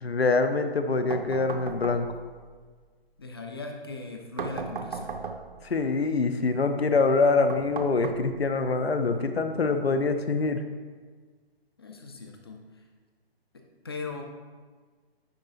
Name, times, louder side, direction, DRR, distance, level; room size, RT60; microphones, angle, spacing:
voice 1, 0.0-2.2 5.6-10.6, left 3 dB, 80° left, 8 dB, 0.6 m, -25 dB
sound 1, 1.1-2.4 4.4-5.7 7.5-8.7, right 5 dB, 55° right, 0.6 m, -36 dB
voice 2, 3.2-5.2 11.8-12.8 13.5-14.2, left 3 dB, 25° left, 3 dB, 0.4 m, -39 dB
9.6 x 4.0 x 2.5 m, 1.5 s
figure-of-eight pair, 135°, 31 cm